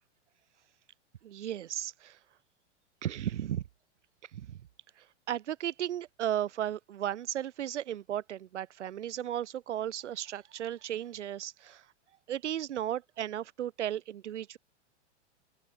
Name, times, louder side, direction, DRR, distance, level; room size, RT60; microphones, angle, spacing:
voice 1, 1.2-2.2 3.0-3.6 4.3-4.7 5.0-11.8 12.3-14.6, right 11 dB, 80° right, 1.4 m, -35 dB
open air
hypercardioid pair, 115°, 35 cm